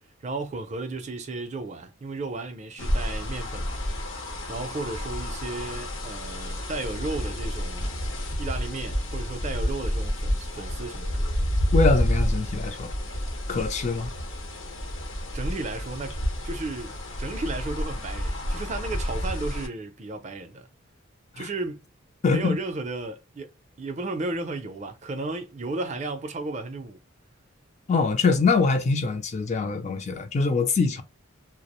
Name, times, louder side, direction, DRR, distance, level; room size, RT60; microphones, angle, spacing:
voice 1, 0.2-3.8 4.5-8.0 8.4-11.2 15.3-16.2 16.4-20.7 21.4-21.8 22.3-23.5 23.8-27.0, right 2 dB, 35° right, 0.4 m, -34 dB
sound 1, 2.8-19.7, equal, 70° left, 0.9 m, -29 dB
voice 2, 11.7-12.9 13.5-14.1 21.3-21.5 22.2-22.6 27.9-31.0, left 4 dB, 35° left, 0.3 m, -23 dB
2.3 x 2.0 x 2.8 m
head